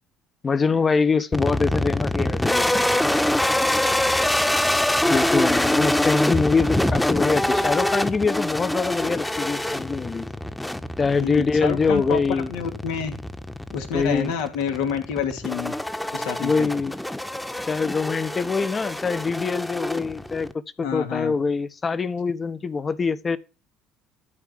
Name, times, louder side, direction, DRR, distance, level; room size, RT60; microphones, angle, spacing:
voice 1, 0.4-2.8 5.1-10.3 11.0-12.5 13.9-14.3 16.4-16.9 17.7-20.5 20.8-23.4, left 4 dB, 35° left, 1.2 m, -24 dB
sound 1, 1.3-20.5, left 1 dB, 5° left, 1.3 m, -25 dB
voice 2, 11.2-13.1 13.7-15.7 16.1-16.7 20.8-21.4, left 7 dB, 80° left, 2.8 m, -28 dB
13.5 x 4.7 x 8.5 m
hypercardioid pair, 65°, 0 cm